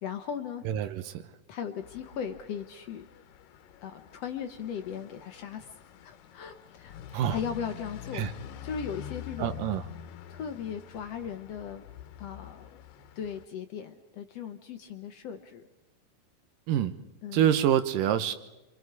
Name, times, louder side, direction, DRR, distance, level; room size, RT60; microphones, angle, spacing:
voice 1, 0.0-0.6 1.5-3.0 3.8-5.7 6.0-7.0 7.3-8.3 8.6-9.6 10.3-11.8 12.2-12.8 13.2-15.7 17.2-17.5, left 7 dB, 65° left, 7 dB, 1.7 m, -37 dB
voice 2, 0.6-1.3 7.1-7.4 8.1-8.3 9.4-9.8 16.7-16.9 17.3-18.3, right 10 dB, 85° right, 11 dB, 2.6 m, -26 dB
sound 1, 1.8-13.5, left 10 dB, 90° left, 2.6 m, -46 dB
27.0 x 25.5 x 4.8 m, 1.0 s
omnidirectional pair, 3.8 m